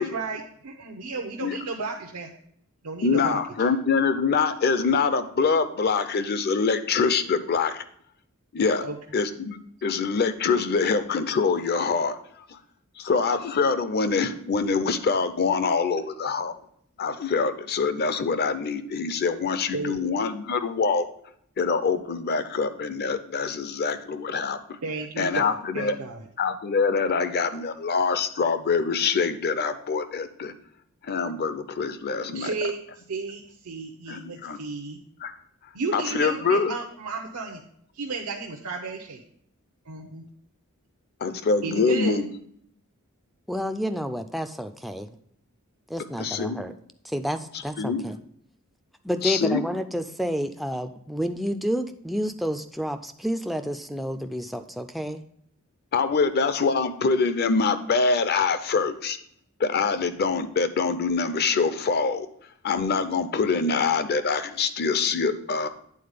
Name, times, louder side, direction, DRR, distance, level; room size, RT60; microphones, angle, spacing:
voice 1, 0.0-2.3 2.8-3.4 8.8-9.0 19.7-20.0 24.8-26.2 32.3-32.8 33.1-35.0 35.7-37.6 37.9-39.2 39.9-40.2 41.6-42.2, right 3 dB, 90° right, 1 dB, 0.7 m, -33 dB
voice 2, 3.0-7.8 8.5-8.8 9.1-12.2 12.5-12.6 13.0-16.5 17.0-21.1 21.6-24.8 25.2-26.0 26.4-30.5 31.0-32.5 34.1-34.6 35.2-35.4 35.9-36.8 41.2-42.3 46.2-46.6 47.5-48.0 49.2-49.6 55.9-59.2 59.6-62.3 62.6-65.7, left 4 dB, 45° left, 11 dB, 0.5 m, -25 dB
voice 3, 43.5-45.1 45.9-46.7 47.0-48.2 49.0-55.2, equal, ahead, 7 dB, 0.3 m, -30 dB
8.6 x 4.0 x 5.0 m, 0.67 s
head